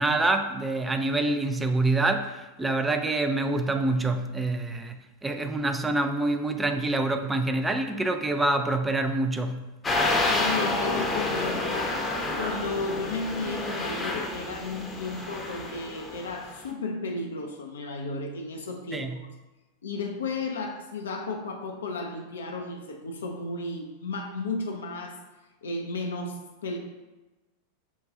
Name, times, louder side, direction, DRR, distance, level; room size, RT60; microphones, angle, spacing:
voice 1, 0.0-9.7 18.9-19.2, right 2 dB, 10° right, 7 dB, 0.3 m, -26 dB
sound 1, 9.8-16.5, left 2 dB, 15° left, 0.7 m, -29 dB
voice 2, 10.3-11.9 12.4-19.1 19.8-25.2 25.6-26.8, left 3 dB, 65° left, 2 dB, 0.5 m, -33 dB
6.2 x 2.3 x 3.6 m, 1.1 s
figure-of-eight pair, 90°, 0 cm